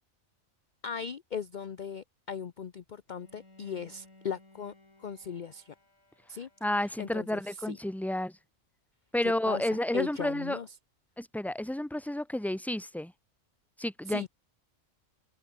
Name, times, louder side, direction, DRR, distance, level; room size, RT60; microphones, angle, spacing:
voice 1, 0.8-4.7 5.0-5.7 6.3-6.5 6.8-7.8 9.2-10.7 14.1-14.3, left 6 dB, 45° left, 0.8 m, -38 dB
Bowed string instrument, 3.1-8.1, left 2 dB, 80° left, 7.3 m, -61 dB
voice 2, 6.6-8.3 9.1-10.6 11.2-13.1 13.8-14.3, left 1 dB, ahead, 1.6 m, -31 dB
omnidirectional pair, 1.3 m